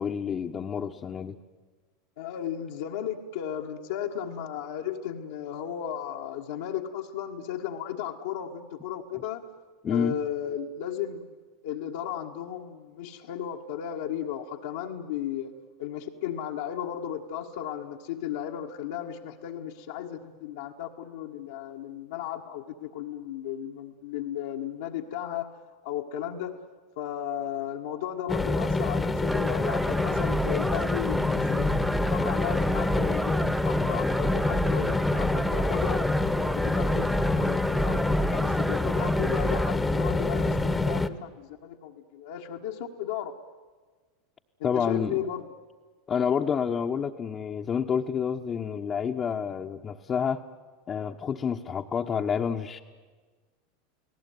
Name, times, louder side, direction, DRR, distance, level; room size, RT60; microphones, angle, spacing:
voice 1, 0.0-1.4 9.1-9.2 9.8-10.1 44.6-45.2 46.1-50.4 50.9-52.8, left 7 dB, 30° left, 1 dB, 1.1 m, -29 dB
voice 2, 2.2-9.4 9.9-11.3 11.6-15.5 15.8-25.5 25.8-26.6 27.0-36.1 36.4-43.3 44.6-45.4, left 10 dB, 70° left, -2 dB, 1.5 m, -35 dB
sound 1, 28.3-41.1, left 2 dB, 10° left, 1.3 m, -26 dB
sound 2, 29.3-39.7, right 1 dB, 5° right, 0.8 m, -32 dB
30.0 x 18.0 x 9.3 m, 1.4 s
hypercardioid pair, 85°, 0 cm